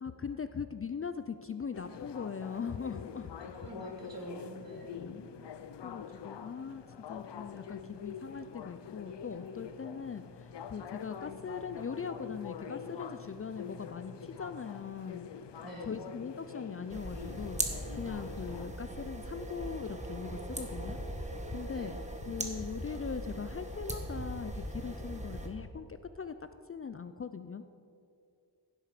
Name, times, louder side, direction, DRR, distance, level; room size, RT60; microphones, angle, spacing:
voice 1, 0.0-3.3 4.7-5.2 5.8-6.8 7.1-15.3 15.8-17.6 18.0-21.0 21.5-26.3 26.7-27.6, left 6 dB, 35° left, 10 dB, 0.4 m, -40 dB
sound 1, 1.7-18.7, left 7 dB, 85° left, 0.6 m, -45 dB
voice 2, 3.4-5.0 15.6-16.0 21.7-21.9, right 1 dB, 55° right, 0 dB, 2.2 m, -46 dB
sound 2, 16.9-25.5, right 1 dB, 15° right, 1.4 m, -39 dB
16.0 x 7.7 x 5.0 m, 2.4 s
wide cardioid pair, 105°, 41 cm